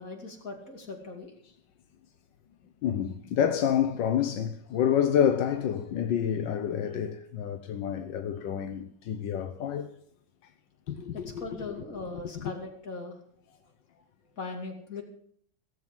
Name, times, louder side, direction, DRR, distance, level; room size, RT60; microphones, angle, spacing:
voice 1, 0.0-1.3 8.6-8.7 11.1-13.2 14.4-15.0, left 3 dB, 50° left, 3.1 m, -39 dB
voice 2, 2.8-9.9 10.9-11.5 12.4-12.5, left 9 dB, 85° left, 1.5 m, -28 dB
17.5 x 7.7 x 7.4 m
omnidirectional pair, 1.9 m